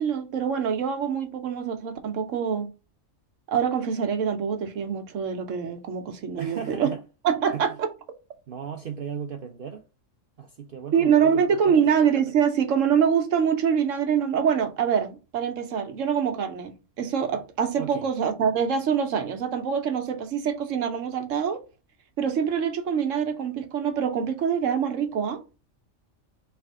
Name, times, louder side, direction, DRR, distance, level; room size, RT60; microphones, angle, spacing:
voice 1, 0.0-2.7 3.5-6.9 7.2-7.9 10.9-21.6 22.2-25.4, right 7 dB, 75° right, 1.1 m, -25 dB
voice 2, 6.4-7.0 7.5-7.7 8.5-9.8 10.4-11.8 17.8-18.1, right 8 dB, 55° right, 0.6 m, -36 dB
3.4 x 3.3 x 4.6 m
omnidirectional pair, 1.3 m